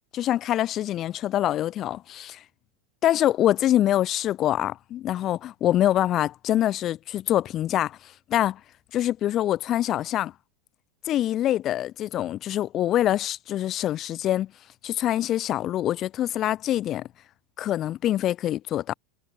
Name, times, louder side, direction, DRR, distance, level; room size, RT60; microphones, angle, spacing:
voice 1, 0.1-2.4 3.0-8.0 8.3-8.6 8.9-10.3 11.1-14.5 14.8-17.1 17.6-18.9, left 12 dB, 30° left, 1.9 m, -25 dB
supercardioid pair, 155°, 0 cm